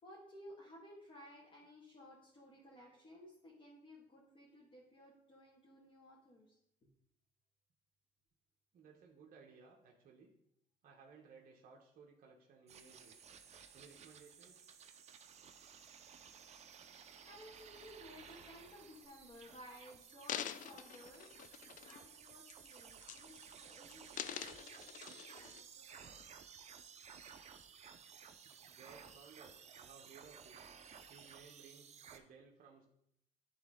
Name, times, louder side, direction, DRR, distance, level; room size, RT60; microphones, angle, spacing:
voice 1, 0.0-6.6 17.2-21.4 21.8-26.2 31.0-31.1, equal, 30° left, -4 dB, 1.8 m, -57 dB
voice 2, 8.7-10.3 10.8-13.3 13.7-14.7 28.4-30.7 31.1-32.9, right 5 dB, 55° right, -1 dB, 1.0 m, -60 dB
sound 1, 12.7-32.2, right 7 dB, 40° right, 0.6 m, -56 dB
sound 2, 19.0-19.4 20.0-22.1 22.5-22.7 23.0-23.6 23.9-25.6 26.2-26.3, left 10 dB, 50° left, 0.4 m, -46 dB
10.5 x 3.5 x 3.7 m, 0.76 s
cardioid pair, 110°, 17 cm